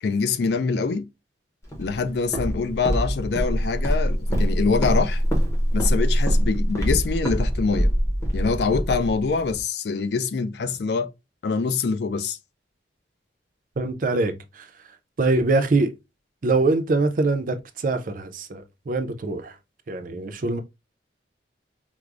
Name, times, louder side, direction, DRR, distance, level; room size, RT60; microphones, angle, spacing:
voice 1, 0.0-1.1 1.8-5.2 5.7-7.9 8.3-11.1 11.4-12.4, left 4 dB, 65° left, 0.4 m, -24 dB
Walk footsteps, 1.7-9.6, equal, 15° left, 0.7 m, -24 dB
voice 2, 13.8-14.7 15.2-15.9 16.4-19.5 19.9-20.6, right 3 dB, 45° right, 0.4 m, -23 dB
4.6 x 2.0 x 2.4 m
head